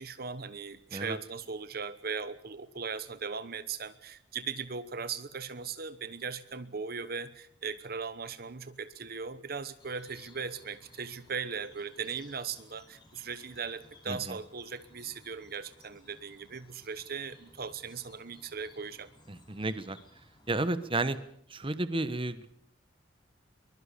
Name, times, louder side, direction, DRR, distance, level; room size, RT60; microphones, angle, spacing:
voice 1, 0.0-19.1, right 5 dB, 55° right, 13 dB, 1.1 m, -38 dB
sound 1, 9.8-21.2, left 2 dB, 25° left, 5.5 m, -59 dB
voice 2, 14.1-14.4 19.3-20.0 20.5-21.2 21.5-22.5, right 2 dB, 30° right, 13 dB, 1.4 m, -32 dB
23.5 x 22.0 x 6.9 m, 0.66 s
head